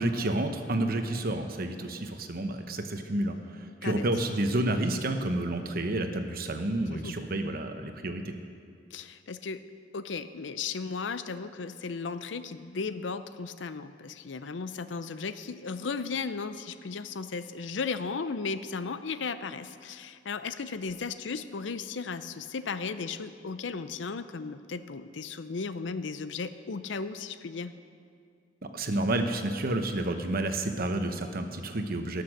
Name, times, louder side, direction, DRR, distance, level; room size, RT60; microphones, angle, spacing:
voice 1, 0.0-8.3 28.6-32.2, right 1 dB, 55° right, 6 dB, 1.0 m, -30 dB
voice 2, 8.9-9.6 9.9-27.7, left 4 dB, 75° left, 12 dB, 0.6 m, -35 dB
18.0 x 6.8 x 6.5 m, 2.2 s
head